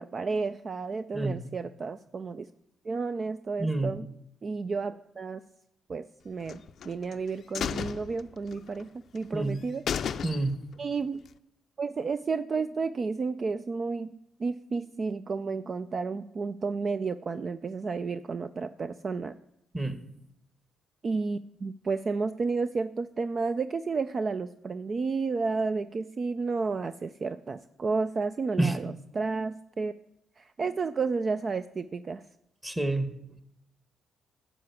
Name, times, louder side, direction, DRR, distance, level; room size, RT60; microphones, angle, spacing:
voice 1, 0.0-2.5 2.8-4.1 4.4-5.4 5.9-9.8 10.8-11.2 11.8-14.1 14.4-19.4 21.0-29.9 30.4-32.2, right 4 dB, 40° right, 12 dB, 0.4 m, -31 dB
voice 2, 3.6-3.9 9.3-9.6 10.2-10.6 19.7-20.0 28.6-28.7 32.6-33.1, right 2 dB, 10° right, 9 dB, 1.3 m, -28 dB
sound 1, 6.5-7.2 7.5-8.8 9.2-9.3 9.6-9.7 9.9-10.8 11.1-11.2, left 8 dB, 60° left, 0.4 m, -34 dB
12.0 x 4.9 x 8.1 m, 0.79 s
cardioid pair, 90°, 0 cm